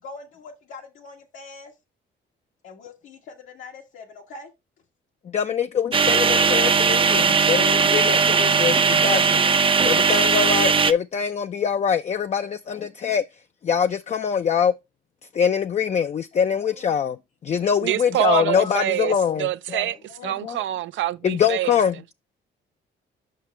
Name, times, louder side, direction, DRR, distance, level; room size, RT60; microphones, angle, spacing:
voice 1, 0.0-1.7 2.6-4.5 7.5-8.0 9.1-9.7 12.4-12.9 16.3-16.9 18.1-18.2 19.8-20.4, left 4 dB, 85° left, 1.4 m, -43 dB
voice 2, 5.3-9.4 9.8-13.2 13.6-14.7 15.3-17.2 17.4-19.8 20.2-20.6 21.2-22.0, left 7 dB, 35° left, 0.4 m, -23 dB
sound 1, 5.9-10.9, right 5 dB, 25° right, 0.5 m, -18 dB
voice 3, 17.8-21.8, right 14 dB, 75° right, 0.5 m, -26 dB
7.5 x 5.7 x 3.2 m
cardioid pair, 90°, 20 cm